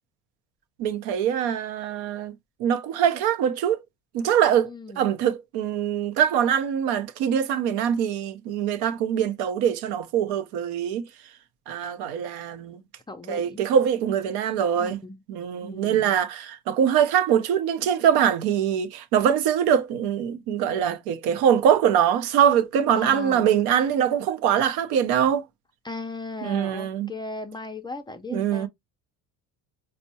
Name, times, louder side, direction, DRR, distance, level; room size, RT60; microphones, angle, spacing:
voice 1, 0.8-2.3 2.6-3.8 4.1-4.7 5.0-11.0 11.7-12.8 13.3-15.0 15.3-25.4 26.4-27.1 28.3-28.7, right 9 dB, 85° right, 0.6 m, -23 dB
voice 2, 4.6-5.1 13.1-13.6 14.8-15.2 15.6-16.1 22.9-23.5 25.8-28.7, left 2 dB, 15° left, 0.4 m, -37 dB
4.4 x 2.1 x 2.6 m
cardioid pair, 115°, 38 cm